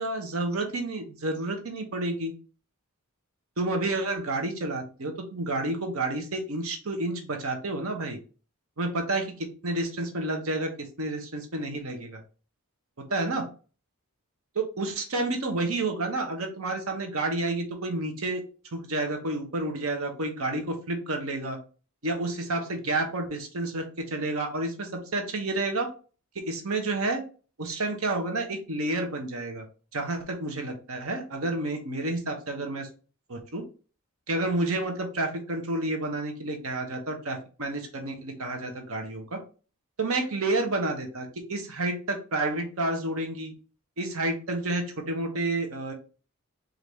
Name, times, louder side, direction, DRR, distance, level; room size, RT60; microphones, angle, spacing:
voice 1, 0.0-2.3 3.6-8.2 8.8-9.2 9.6-10.7 11.0-12.2 13.1-13.5 14.5-18.4 18.7-21.6 22.0-25.9 26.3-27.2 27.6-29.6 29.9-32.9 33.3-33.6 34.3-39.4 40.0-43.5 44.0-45.9, right 2 dB, 65° right, 4 dB, 1.0 m, -30 dB
4.7 x 2.6 x 3.4 m, 0.37 s
head